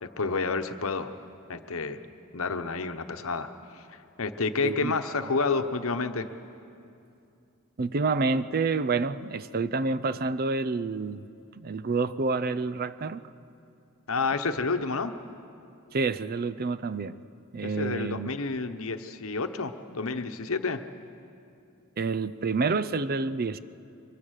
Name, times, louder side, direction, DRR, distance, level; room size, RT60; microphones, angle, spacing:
voice 1, 0.0-1.1 1.5-2.0 2.3-3.5 3.7-3.8 4.2-6.3 14.1-15.1 17.6-20.8, left 4 dB, 65° left, 8 dB, 1.0 m, -29 dB
voice 2, 4.6-4.9 7.8-11.3 11.6-13.2 15.9-17.2 17.5-18.3 22.0-23.6, right 4 dB, 45° right, 15 dB, 0.5 m, -28 dB
24.0 x 23.0 x 6.5 m, 2.6 s
head